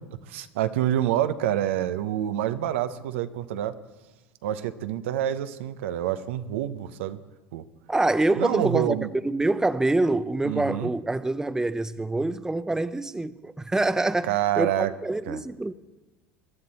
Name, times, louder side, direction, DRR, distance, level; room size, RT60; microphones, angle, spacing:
voice 1, 0.3-3.7 4.4-7.2 7.5-7.6 8.4-9.1 10.4-10.9 14.3-14.9 15.3-15.4, right 12 dB, 80° right, 0.8 m, -27 dB
voice 2, 7.9-15.7, right 2 dB, 10° right, 0.6 m, -26 dB
22.5 x 11.5 x 4.2 m
hypercardioid pair, 80°, 7 cm